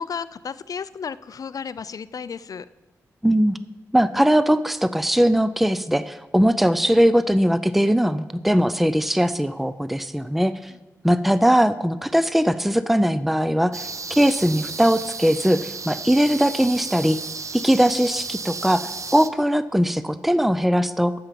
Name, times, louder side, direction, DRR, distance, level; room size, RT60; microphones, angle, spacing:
voice 1, 0.0-2.7, left 6 dB, 60° left, 16 dB, 0.5 m, -33 dB
voice 2, 3.2-3.6 3.9-10.7 11.0-17.2 17.5-21.1, equal, 5° right, 14 dB, 0.5 m, -20 dB
sound 1, 13.7-19.3, right 4 dB, 50° right, 0.7 m, -34 dB
8.7 x 7.0 x 7.5 m, 1.1 s
cardioid pair, 45°, 7 cm